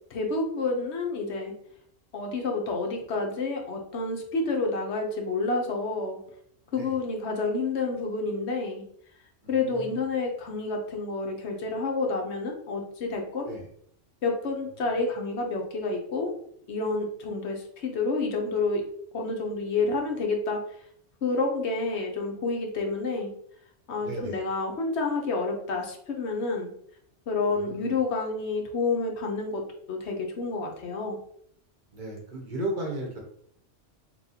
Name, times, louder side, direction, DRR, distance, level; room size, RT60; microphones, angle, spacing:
voice 1, 0.1-1.5 2.1-6.2 6.7-8.8 9.5-13.5 14.2-16.3 16.7-18.8 19.1-20.6 21.2-23.3 23.9-26.7 27.3-31.2, left 3 dB, 65° left, 1 dB, 1.0 m, -29 dB
voice 2, 9.4-10.0 13.5-13.7 14.8-14.9 24.0-24.4 27.5-28.0 31.9-33.2, right 1 dB, 45° right, -1 dB, 0.9 m, -36 dB
5.6 x 2.3 x 2.8 m, 0.66 s
omnidirectional pair, 1.3 m